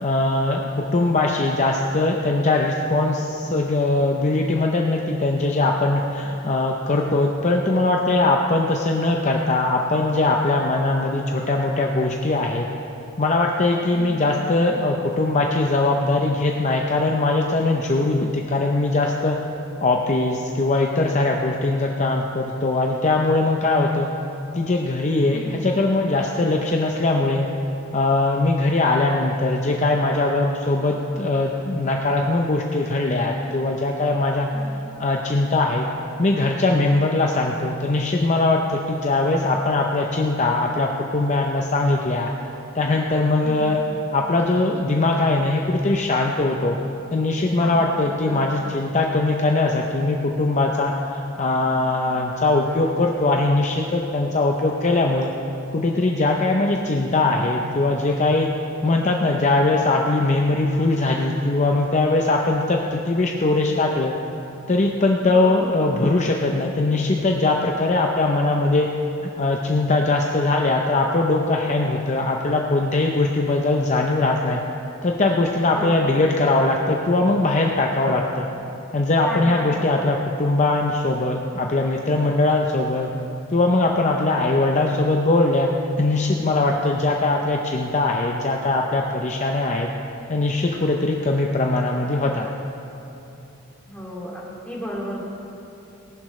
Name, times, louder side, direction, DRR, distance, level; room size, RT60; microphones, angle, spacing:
voice 1, 0.0-12.7 13.2-19.4 19.8-24.1 24.5-27.5 27.9-34.5 35.0-35.9 36.2-42.3 42.7-43.8 44.1-46.8 47.1-55.3 55.7-58.5 58.8-64.2 64.7-68.9 69.4-74.6 75.0-78.5 78.9-83.1 83.5-85.7 86.0-89.9 90.3-92.5, left 2 dB, 35° left, 1 dB, 0.7 m, -21 dB
voice 2, 13.9-14.4 25.3-25.7 34.5-34.7 43.4-43.9 47.6-48.5 56.6-56.9 65.3-65.9 75.7-76.4 79.2-80.0 80.4-80.6 93.8-95.2, equal, 5° left, -5 dB, 2.5 m, -35 dB
18.5 x 11.5 x 3.2 m, 2.9 s
head